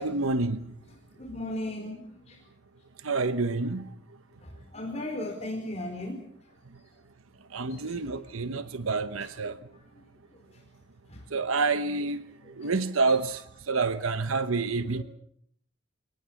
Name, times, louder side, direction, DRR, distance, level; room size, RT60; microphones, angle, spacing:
voice 1, 0.0-0.6 3.0-3.9 7.5-9.6 11.3-12.2 12.6-13.4 13.7-15.0, right 3 dB, 85° right, 1.1 m, -28 dB
voice 2, 0.8-2.4 4.4-6.5 7.7-8.8 9.2-9.4 9.7-10.0 10.3-10.6 11.1-11.2 12.4-12.8 13.1-13.2 14.7-15.0, left 1 dB, 30° left, 4.6 m, -39 dB
29.0 x 19.0 x 7.2 m
head